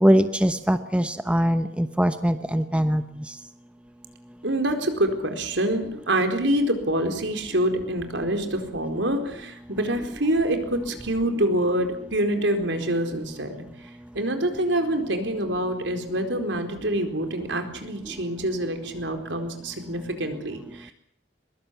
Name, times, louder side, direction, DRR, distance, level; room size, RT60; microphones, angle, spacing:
voice 1, 0.0-3.0, equal, 5° right, 9 dB, 0.9 m, -21 dB
voice 2, 4.4-13.6 14.1-20.9, right 1 dB, 70° right, 6 dB, 4.4 m, -26 dB
22.5 x 22.0 x 8.3 m, 0.68 s
head